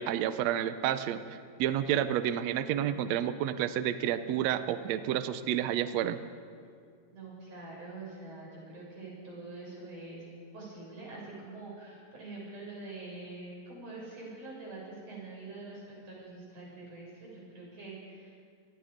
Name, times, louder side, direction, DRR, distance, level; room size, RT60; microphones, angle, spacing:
voice 1, 0.0-6.2, right 10 dB, 90° right, 11 dB, 1.5 m, -30 dB
voice 2, 7.1-10.3 10.5-18.4, right 2 dB, 45° right, -5 dB, 7.9 m, -45 dB
26.5 x 19.5 x 5.1 m, 2.2 s
omnidirectional pair, 4.1 m